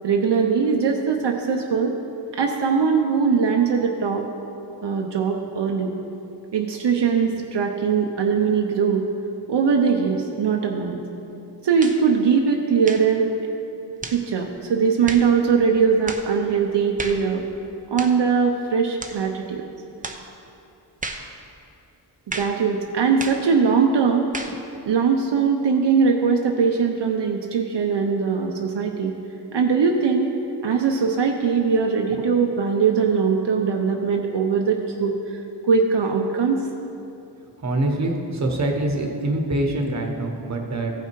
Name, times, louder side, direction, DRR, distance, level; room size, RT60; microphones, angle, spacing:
voice 1, 0.0-1.9 2.4-4.3 4.8-5.9 6.5-9.0 9.5-11.0 11.6-13.3 14.1-17.4 17.9-19.6 22.3-24.3 24.9-29.1 29.5-30.3 30.6-36.6, right 5 dB, 75° right, 1 dB, 0.8 m, -21 dB
sound 1, 11.8-12.0 12.8-13.1 14.0-14.2 15.1-15.3 16.1-16.3 17.0-17.3 18.0-18.2 19.0-19.2 20.0-20.3 21.0-21.3 22.3-22.6 23.2-23.5 24.3-24.6, right 3 dB, 20° right, 0.6 m, -33 dB
voice 2, 37.6-40.9, right 1 dB, 40° right, 2 dB, 1.2 m, -24 dB
15.5 x 5.8 x 4.6 m, 2.8 s
wide cardioid pair, 115°, 43 cm